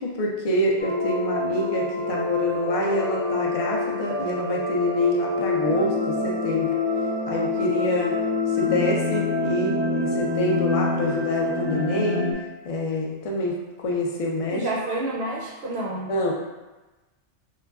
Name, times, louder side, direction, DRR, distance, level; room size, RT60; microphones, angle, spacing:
voice 1, 0.0-6.7 7.3-8.2 8.5-12.3 12.6-14.7 16.1-16.3, left 1 dB, 65° left, -2 dB, 0.3 m, -26 dB
sound 1, 0.8-12.3, left 3 dB, 10° right, 0.8 m, -26 dB
voice 2, 14.5-16.1, right 2 dB, 70° right, -5 dB, 0.8 m, -29 dB
3.8 x 2.1 x 2.3 m, 1.1 s
omnidirectional pair, 1.2 m